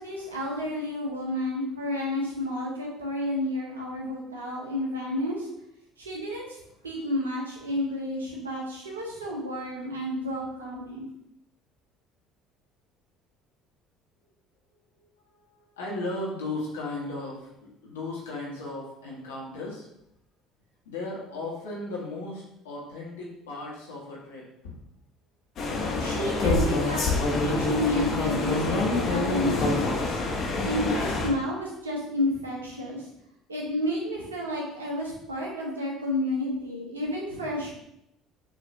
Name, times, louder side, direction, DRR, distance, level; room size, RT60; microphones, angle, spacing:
voice 1, 0.0-5.5 6.0-6.6 6.8-11.1 26.0-27.1 27.4-30.2 30.6-33.1 33.5-37.7, left 1 dB, 85° right, -2 dB, 0.9 m, -31 dB
voice 2, 14.9-17.5 17.8-19.9 20.8-24.4, left 2 dB, 75° left, -5 dB, 1.4 m, -36 dB
sound 1, 25.6-31.3, left 3 dB, 50° left, 1.1 m, -26 dB
6.1 x 3.1 x 2.7 m, 0.80 s
figure-of-eight pair, 60°, 0 cm